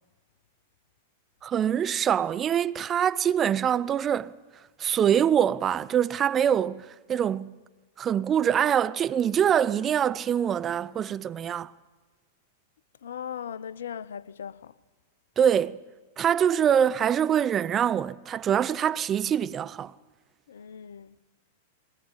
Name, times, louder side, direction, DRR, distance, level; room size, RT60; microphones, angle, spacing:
voice 1, 1.4-4.3 4.8-7.6 8.0-11.7 15.4-15.8 16.2-19.9, right 9 dB, 30° right, 0.7 m, -24 dB
voice 2, 13.0-14.7 20.5-21.2, left 8 dB, 75° left, 0.7 m, -38 dB
22.0 x 19.5 x 8.9 m
hypercardioid pair, 100°, 0 cm